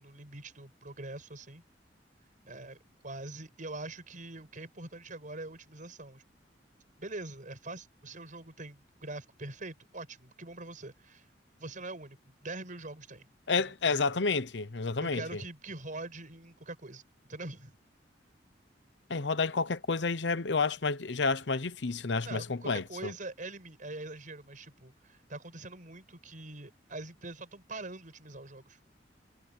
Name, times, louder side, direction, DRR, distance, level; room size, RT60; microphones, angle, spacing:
voice 1, 0.0-1.6 2.5-2.8 3.0-6.2 7.0-11.3 11.6-13.3 13.6-13.7 15.0-17.0 17.3-17.7 22.3-28.8, right 2 dB, 45° right, 5.3 m, -43 dB
voice 2, 13.5-15.4 19.1-23.1, left 4 dB, 70° left, 0.9 m, -30 dB
head